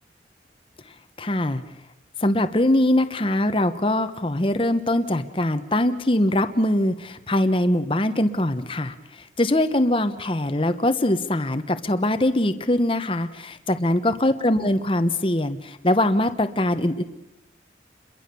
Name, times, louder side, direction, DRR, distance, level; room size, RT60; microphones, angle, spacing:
voice 1, 1.2-1.6 2.2-8.9 9.4-17.0, left 1 dB, 30° left, 9 dB, 1.0 m, -22 dB
28.0 x 22.5 x 6.9 m, 0.92 s
head